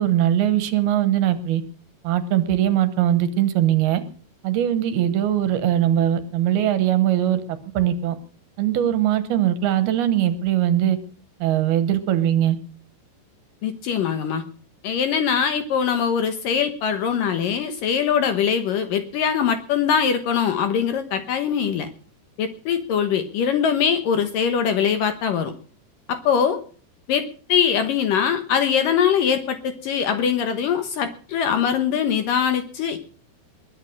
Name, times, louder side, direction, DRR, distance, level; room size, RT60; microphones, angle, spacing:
voice 1, 0.0-1.6 2.0-4.0 4.4-7.4 7.7-8.2 8.6-11.0 11.4-12.6, right 11 dB, 70° right, 12 dB, 2.9 m, -20 dB
voice 2, 13.6-14.4 14.8-21.9 22.4-25.5 26.1-26.6 27.1-33.0, left 7 dB, 65° left, 9 dB, 2.4 m, -22 dB
21.5 x 9.1 x 6.5 m, 0.42 s
omnidirectional pair, 5.0 m